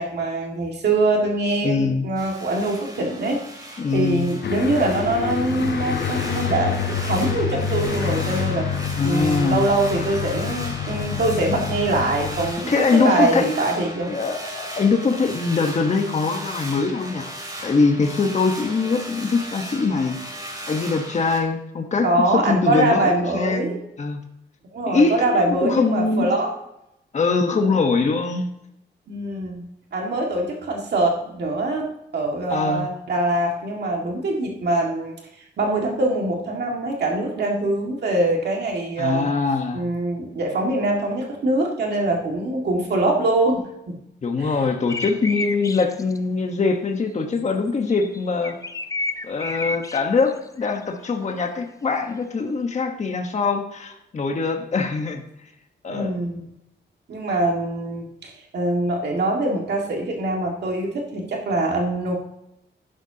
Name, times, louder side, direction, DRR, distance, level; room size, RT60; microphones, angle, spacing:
voice 1, 0.0-14.1 22.0-23.8 24.7-26.5 29.1-29.7 29.9-35.1 35.6-39.3 39.7-44.0 44.4-44.6 55.9-56.4 57.1-62.2, right 2 dB, 65° right, 0 dB, 1.9 m, -23 dB
voice 2, 1.6-2.0 3.8-4.4 9.0-9.6 10.8-10.9 12.7-13.5 14.1-17.3 17.6-20.2 20.7-24.2 24.9-26.3 27.1-28.5 32.5-32.9 39.0-39.8 44.2-48.6 49.2-55.2 55.8-56.1, left 4 dB, 40° left, 3 dB, 1.1 m, -22 dB
sound 1, 2.2-21.4, right 1 dB, 20° right, 2.3 m, -37 dB
Aircraft, 4.4-12.5, left 7 dB, 65° left, 0.9 m, -27 dB
sound 2, 44.9-46.2 47.4-47.5 47.9-50.0 50.3-50.8, left 2 dB, 15° left, 0.5 m, -30 dB
11.5 x 10.5 x 2.8 m, 0.84 s
wide cardioid pair, 165°, 19 cm